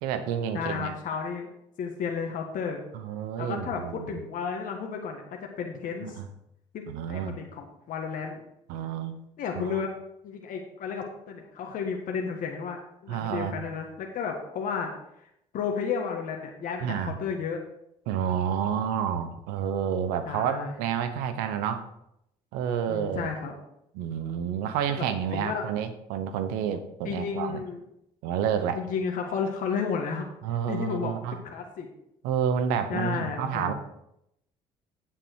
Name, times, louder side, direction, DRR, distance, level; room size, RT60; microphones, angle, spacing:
voice 1, 0.0-0.9 2.9-4.2 6.0-6.3 6.9-7.4 8.7-9.2 9.5-9.8 13.1-13.6 16.8-17.1 18.1-21.9 22.5-23.3 23.9-27.6 28.2-28.8 30.4-31.4 32.2-33.7, right 8 dB, 80° right, 10 dB, 1.0 m, -29 dB
voice 2, 0.5-1.5 1.8-2.8 3.4-5.2 5.6-6.1 6.7-8.4 9.4-9.9 10.2-14.9 15.5-17.6 20.2-20.7 22.9-23.6 24.9-25.6 27.0-27.8 28.7-30.3 30.7-31.1 31.4-31.9 32.9-33.7, left 6 dB, 65° left, 2 dB, 1.6 m, -32 dB
9.1 x 7.5 x 4.6 m, 0.78 s
supercardioid pair, 65°, 15 cm